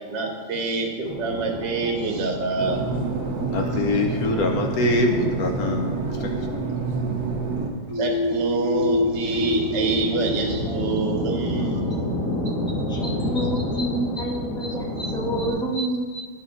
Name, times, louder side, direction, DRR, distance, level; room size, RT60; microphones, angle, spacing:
voice 1, 0.1-2.8 3.7-4.0 7.9-11.8 12.8-13.0, right 4 dB, 85° right, 2 dB, 1.6 m, -27 dB
sound 1, 1.0-15.5, left 1 dB, 50° left, 1.7 m, -31 dB
sound 2, 2.6-7.7, right 4 dB, 70° right, 1.3 m, -27 dB
voice 2, 3.5-6.3, left 2 dB, 65° left, 2 dB, 1.0 m, -24 dB
sound 3, 7.9-11.5, left 2 dB, 15° right, 1.1 m, -26 dB
voice 3, 12.7-16.3, right 1 dB, 5° left, -2 dB, 0.3 m, -28 dB
11.0 x 4.2 x 3.7 m, 1.5 s
omnidirectional pair, 1.9 m